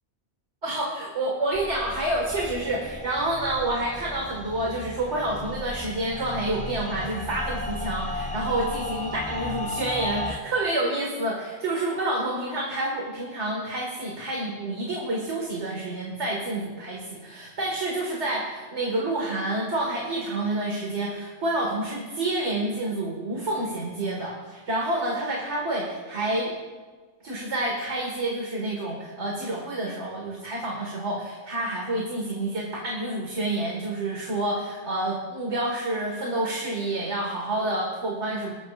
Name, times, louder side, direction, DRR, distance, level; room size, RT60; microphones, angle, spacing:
voice 1, 0.6-26.5 27.2-38.5, right 1 dB, 75° right, -2 dB, 2.2 m, -28 dB
sound 1, 1.5-10.4, left 2 dB, 5° left, 0.8 m, -35 dB
21.0 x 14.0 x 2.5 m, 1.4 s
omnidirectional pair, 1.2 m